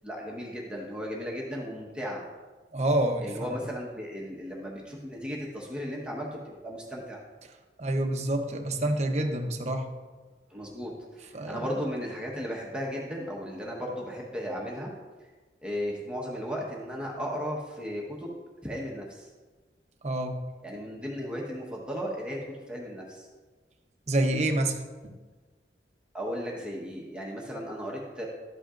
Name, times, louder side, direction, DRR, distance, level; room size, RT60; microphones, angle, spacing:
voice 1, 0.0-2.2 3.2-7.2 10.5-14.9 15.6-18.3 18.6-19.3 20.6-22.4 22.7-23.3 26.1-28.3, equal, 5° right, -3 dB, 1.1 m, -35 dB
voice 2, 2.7-3.6 7.8-9.9 11.3-11.7 20.0-20.4 24.1-25.1, right 1 dB, 40° right, 5 dB, 0.8 m, -28 dB
12.5 x 8.4 x 2.5 m, 1.3 s
head